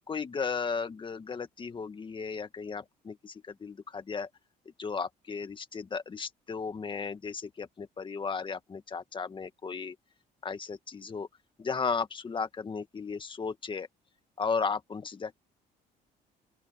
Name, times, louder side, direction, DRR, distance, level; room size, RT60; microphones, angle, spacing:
voice 1, 0.1-4.3 4.8-10.0 10.4-11.3 11.6-13.9 14.4-15.4, left 5 dB, 30° left, 1.8 m, -35 dB
open air
cardioid pair, 110°, 17 cm